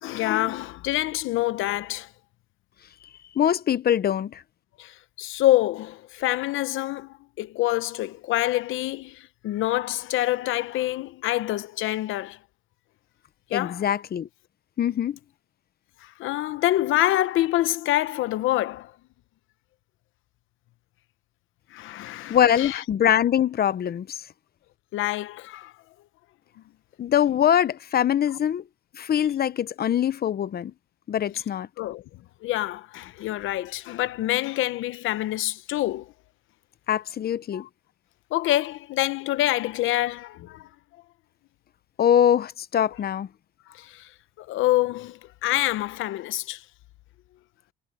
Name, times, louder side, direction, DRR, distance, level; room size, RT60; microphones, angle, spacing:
voice 1, 0.0-2.1 4.8-12.4 13.5-13.8 16.0-18.9 21.7-22.8 24.9-25.7 31.8-32.0 32.4-36.1 37.5-37.7 38.3-40.7 43.7-44.1 44.4-46.6, left 15 dB, 90° left, 0.9 m, -26 dB
voice 2, 3.4-4.4 13.5-14.3 14.8-15.2 22.3-24.2 27.0-28.6 28.9-30.7 31.1-31.7 36.9-37.7 42.0-43.3, left 9 dB, 50° left, 0.9 m, -23 dB
cardioid pair, 90°, 20 cm